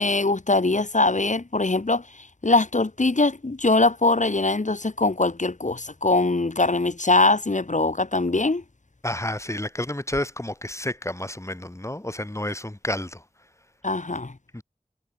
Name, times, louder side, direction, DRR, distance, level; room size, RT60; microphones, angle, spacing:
voice 1, 0.0-8.6 13.8-14.3, left 2 dB, 70° left, 3.0 m, -22 dB
voice 2, 9.0-13.2 14.5-14.6, left 1 dB, 20° left, 2.5 m, -30 dB
wide cardioid pair, 45°, 13 cm